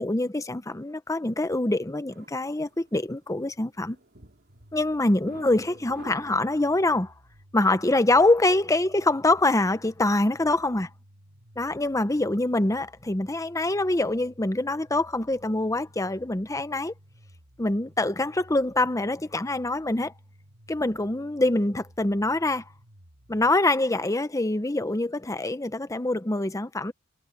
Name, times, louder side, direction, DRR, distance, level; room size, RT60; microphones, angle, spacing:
voice 1, 0.0-4.0 4.7-7.1 7.5-10.9 11.6-16.9 17.6-20.1 20.7-22.6 23.3-26.9, left 2 dB, 15° left, 0.8 m, -25 dB
sound 1, 2.1-7.0, right 2 dB, 50° right, 3.0 m, -51 dB
sound 2, 4.5-23.5, equal, 75° right, 5.8 m, -55 dB
head